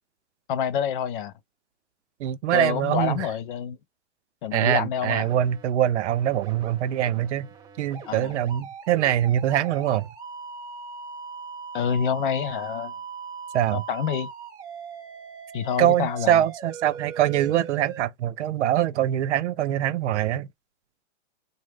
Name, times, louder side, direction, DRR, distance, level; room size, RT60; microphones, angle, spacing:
voice 1, 0.5-1.3 2.5-3.8 4.4-5.3 8.1-8.3 11.7-12.9 13.7-14.3 15.5-16.4, left 8 dB, 45° left, 0.5 m, -27 dB
voice 2, 2.2-3.3 4.5-7.5 7.8-10.1 13.5-13.8 15.8-20.5, right 12 dB, 80° right, 0.6 m, -23 dB
sound 1, 5.0-5.7 6.1-18.0, right 6 dB, 15° right, 0.7 m, -40 dB
3.0 x 2.2 x 3.4 m
hypercardioid pair, 160°, 35 cm